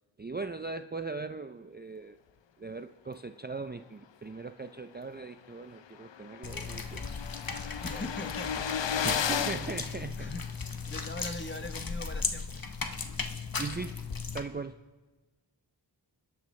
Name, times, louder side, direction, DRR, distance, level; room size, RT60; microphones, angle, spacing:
voice 1, 0.2-2.2 2.6-7.1 9.0-10.3 13.6-14.0 14.3-14.8, right 4 dB, 25° right, 9 dB, 0.4 m, -39 dB
sound 1, 5.2-5.3 5.6-5.7 5.9-10.7, left 8 dB, 85° left, 0.6 m, -34 dB
sound 2, 6.4-14.4, left 4 dB, 50° left, 1.0 m, -37 dB
voice 2, 7.8-8.7 10.2-12.5, left 2 dB, 25° left, 8 dB, 1.0 m, -41 dB
26.5 x 12.5 x 3.2 m, 1.2 s
wide cardioid pair, 50°, 43 cm